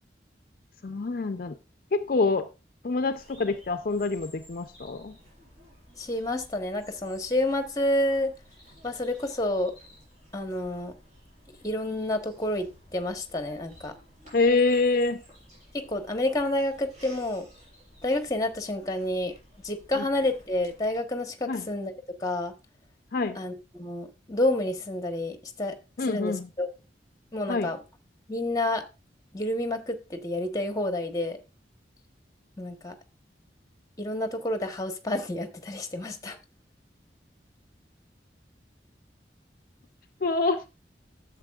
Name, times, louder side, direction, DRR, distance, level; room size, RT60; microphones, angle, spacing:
voice 1, 0.8-1.6 1.9-2.5 2.8-5.2 14.3-15.2 20.0-20.1 21.5-21.7 23.1-23.4 26.0-26.5 27.5-27.7 40.2-40.6, left 3 dB, 55° left, 0.5 m, -26 dB
Bird vocalization bird call bird song, 3.1-21.0, equal, 45° right, 5.9 m, -54 dB
voice 2, 6.0-8.3 8.8-9.7 10.3-10.9 11.6-13.9 15.7-17.5 18.0-19.3 19.6-21.9 22.2-22.5 23.4-25.8 26.1-26.7 27.3-27.8 28.3-28.8 29.3-31.4 32.6-33.0 34.0-36.4, left 1 dB, 20° left, 1.1 m, -29 dB
12.5 x 7.3 x 2.4 m
head